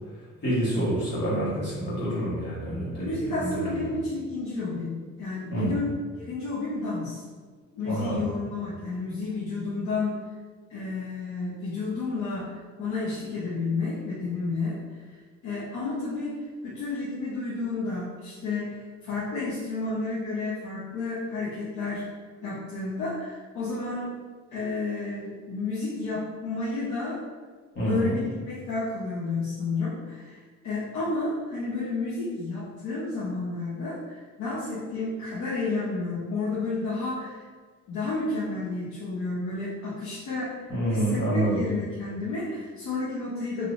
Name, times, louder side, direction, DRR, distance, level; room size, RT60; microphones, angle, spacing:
voice 1, 0.4-3.9 5.5-5.8 7.8-8.3 27.7-28.1 40.7-41.6, right 1 dB, 35° left, -8 dB, 1.2 m, -27 dB
voice 2, 3.0-4.9 5.2-7.2 7.7-10.2 10.7-14.8 15.4-16.4 16.6-22.1 22.4-24.1 24.5-27.2 27.9-30.4 30.6-37.4 37.9-40.6 40.9-43.7, left 3 dB, 90° left, -8 dB, 0.8 m, -31 dB
3.4 x 2.5 x 2.5 m, 1.5 s
cardioid pair, 175°, 29 cm